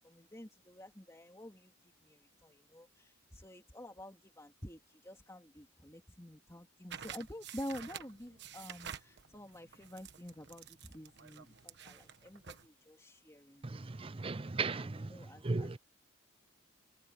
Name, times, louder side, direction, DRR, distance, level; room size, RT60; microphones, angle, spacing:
voice 1, 0.0-1.7 2.1-2.2 2.4-10.6 10.9-13.8 14.1-14.3 14.7-15.7, left 1 dB, 15° left, 3.1 m, -49 dB
sound 1, 6.9-12.7, right 8 dB, 55° right, 1.3 m, -50 dB
voice 2, 13.6-15.2 15.4-15.8, right 3 dB, 25° right, 0.5 m, -36 dB
head